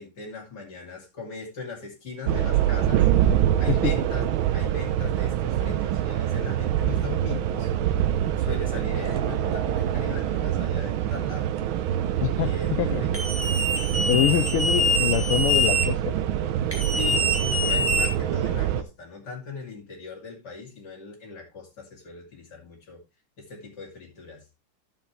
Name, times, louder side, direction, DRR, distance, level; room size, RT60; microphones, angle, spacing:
voice 1, 0.0-3.1 3.6-7.7 8.5-11.5 12.4-13.3 16.9-23.0 23.4-24.4, left 4 dB, 50° left, 0 dB, 3.2 m, -39 dB
sound 1, 2.3-18.8, right 11 dB, 70° right, 1.5 m, -25 dB
voice 2, 12.2-13.0 14.1-16.1, left 13 dB, 80° left, 9 dB, 1.5 m, -25 dB
sound 2, 13.1-15.9 16.7-18.5, left 1 dB, 5° right, 2.4 m, -25 dB
10.5 x 7.5 x 3.1 m, 0.25 s
omnidirectional pair, 2.4 m